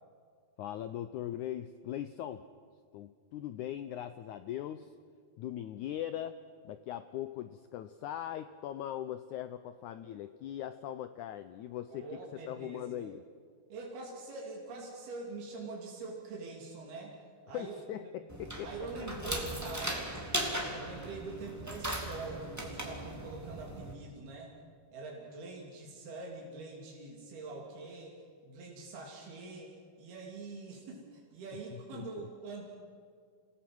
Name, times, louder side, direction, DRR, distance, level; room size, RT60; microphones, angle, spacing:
voice 1, 0.6-2.4 2.9-4.9 5.4-6.4 6.6-13.2 17.5-18.7 19.0-19.1 31.5-32.3, left 11 dB, 85° left, 11 dB, 1.7 m, -40 dB
voice 2, 11.9-13.1 13.7-17.1 17.5-17.7 18.0-18.1 18.6-20.2 20.8-24.5 24.9-28.2 28.4-29.7 30.0-32.6, right 3 dB, 85° right, -1 dB, 4.9 m, -44 dB
sound 1, 18.3-23.9, right 1 dB, 5° right, 2.0 m, -38 dB
28.5 x 19.0 x 6.2 m, 2.1 s
omnidirectional pair, 4.3 m